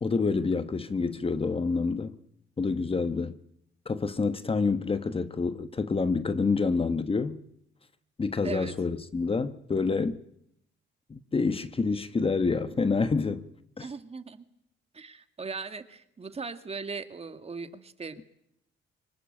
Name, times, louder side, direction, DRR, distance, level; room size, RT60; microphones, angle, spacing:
voice 1, 0.0-2.2 2.6-3.4 3.8-7.4 8.2-10.2 11.1-13.4 13.8-13.9, left 4 dB, 30° left, 1.2 m, -27 dB
voice 2, 8.4-8.7 13.8-14.4 14.9-18.2, right 4 dB, 30° right, 2.0 m, -38 dB
24.5 x 22.0 x 9.0 m
cardioid pair, 90°, 20 cm